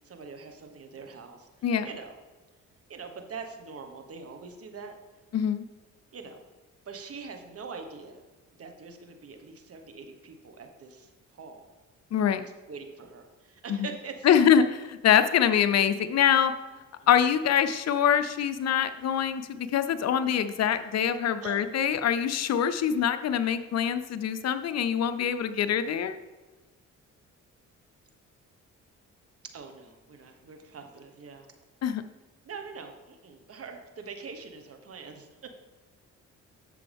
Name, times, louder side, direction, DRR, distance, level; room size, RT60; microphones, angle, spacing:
voice 1, 0.0-1.5 1.8-2.2 2.9-4.9 6.1-6.4 6.8-8.2 8.6-11.7 12.7-14.4 21.4-21.6 29.4-31.5 32.4-35.5, right 5 dB, 50° right, 5 dB, 1.4 m, -43 dB
voice 2, 5.3-5.7 12.1-12.4 13.7-13.9 14.2-14.6 15.0-16.5 17.1-26.2 31.8-32.0, left 8 dB, 60° left, 11 dB, 0.6 m, -24 dB
11.5 x 6.9 x 3.5 m, 1.3 s
cardioid pair, 90°, 30 cm